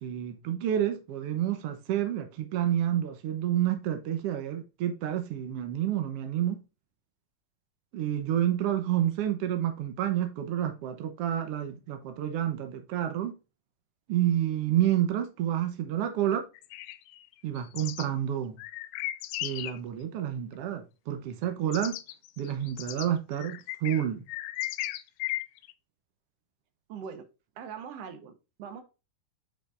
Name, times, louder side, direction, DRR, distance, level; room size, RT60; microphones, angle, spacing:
voice 1, 0.0-6.6 7.9-13.3 14.1-16.4 17.4-18.6 19.4-22.0 22.4-24.2, right 11 dB, 90° right, 1.3 m, -29 dB
sound 1, 16.6-18.1 18.6-19.8 21.4-21.5 21.7-25.7, left 15 dB, 85° left, 2.3 m, -36 dB
voice 2, 26.9-27.2 27.6-28.3 28.6-28.8, right 7 dB, 65° right, 1.7 m, -41 dB
8.2 x 5.2 x 2.4 m
omnidirectional pair, 4.0 m